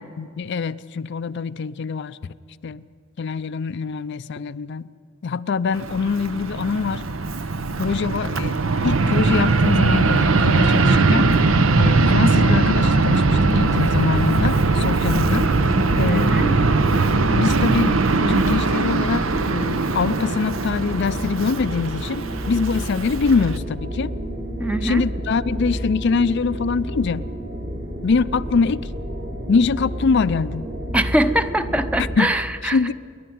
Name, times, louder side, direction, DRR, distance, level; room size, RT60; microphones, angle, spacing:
voice 1, 0.2-2.2 2.6-2.8 3.2-4.9 5.2-7.0 7.8-11.3 11.8-15.5 15.9-16.4 17.3-18.0 18.3-24.1 24.8-27.3 28.0-28.9 29.5-30.7 32.2-32.3 32.6-32.9, left 5 dB, 60° left, 13 dB, 0.4 m, -23 dB
Fixed-wing aircraft airplane, 5.7-23.6, right 3 dB, 80° right, 0.9 m, -20 dB
sound 1, 14.5-32.2, equal, 50° right, 2.9 m, -31 dB
voice 2, 16.1-16.6 24.6-25.0 30.9-32.8, right 1 dB, 5° right, 10 dB, 0.7 m, -22 dB
28.5 x 11.0 x 9.3 m, 2.2 s
head